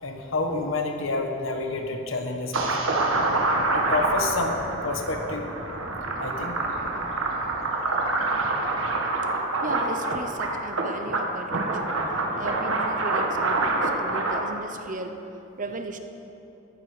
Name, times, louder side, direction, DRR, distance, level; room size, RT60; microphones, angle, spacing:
voice 1, 0.0-2.7 3.7-5.4 6.2-6.6, left 3 dB, 70° left, 4 dB, 1.2 m, -29 dB
sound 1, 2.5-14.4, right 2 dB, 70° right, 1.7 m, -26 dB
voice 2, 9.6-11.9 12.4-15.2 15.6-16.0, right 2 dB, 40° right, 7 dB, 0.9 m, -36 dB
14.0 x 13.0 x 5.0 m, 2.9 s
head